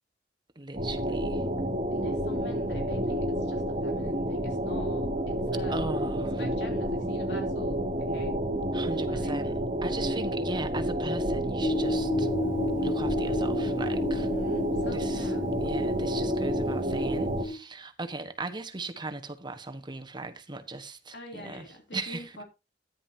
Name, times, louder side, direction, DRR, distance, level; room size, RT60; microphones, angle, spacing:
voice 1, 0.5-1.4 5.7-6.4 8.7-9.5 9.8-12.3 12.8-14.3 14.9-15.3 15.6-21.7 21.9-22.3, right 3 dB, 25° right, 1.2 m, -38 dB
sound 1, 0.7-17.5, equal, 45° right, 2.5 m, -30 dB
voice 2, 1.9-5.8 6.4-8.3 9.1-9.4 14.1-15.5 21.1-22.4, left 1 dB, 75° left, 3.1 m, -44 dB
sound 2, 11.6-17.6, left 1 dB, 50° left, 1.5 m, -32 dB
13.5 x 10.5 x 2.8 m
head